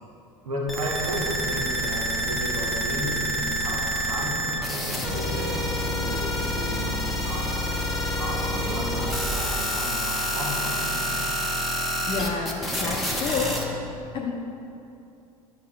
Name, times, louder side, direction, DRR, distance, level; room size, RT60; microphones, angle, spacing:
voice 1, 0.4-7.4 8.2-11.2, right 1 dB, 75° right, -2 dB, 1.2 m, -33 dB
sound 1, 0.7-13.6, equal, ahead, 1.0 m, -28 dB
voice 2, 12.1-13.6 14.1-14.3, left 4 dB, 25° left, -2 dB, 0.7 m, -29 dB
11.0 x 6.5 x 2.4 m, 2.7 s
figure-of-eight pair, 75°, 19 cm